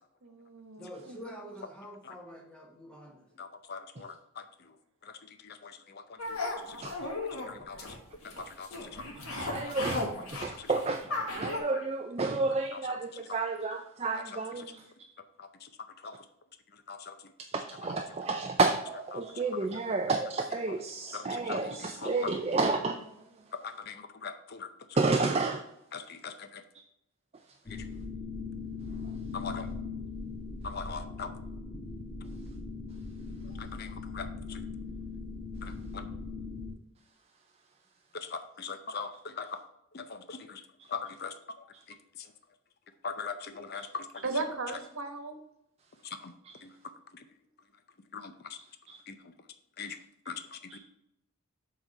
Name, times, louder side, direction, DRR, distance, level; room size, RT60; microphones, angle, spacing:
voice 1, 0.2-1.5 44.2-45.4, right 3 dB, 75° right, 6 dB, 1.1 m, -37 dB
voice 2, 0.8-3.2 7.3-7.4, equal, 5° left, -1 dB, 1.2 m, -46 dB
voice 3, 3.4-4.4 5.1-5.2 5.4-6.0 6.3-6.8 7.5-7.8 8.2-8.9 9.5-9.6 10.4-10.7 11.4-11.8 12.7-12.8 14.1-14.2 15.4-15.7 16.0-16.2 16.9-17.1 19.1-19.2 21.1-21.6 22.0-22.3 23.5-24.7 25.9-26.6 27.7-27.8 29.3-29.7 30.6-31.3 33.6-34.6 35.6-36.0 38.1-39.6 39.9-40.6 40.9-41.3 43.0-44.2 46.0-46.3 46.6-46.7 48.1-48.6 49.1-49.2 49.8-50.0 50.3-50.8, left 5 dB, 45° left, 9 dB, 0.6 m, -41 dB
sound 1, 6.2-11.6, left 2 dB, 90° left, 1.8 m, -36 dB
voice 4, 9.3-14.8 17.5-23.2 25.0-25.6 40.8-40.9 43.8-43.9 46.4-46.6 48.6-49.0 49.8-49.9 50.3-50.4 50.7-50.8, right 3 dB, 30° right, 5 dB, 0.4 m, -31 dB
sound 2, 27.7-36.7, left 4 dB, 30° left, 1.1 m, -40 dB
7.4 x 4.0 x 5.3 m, 0.80 s
head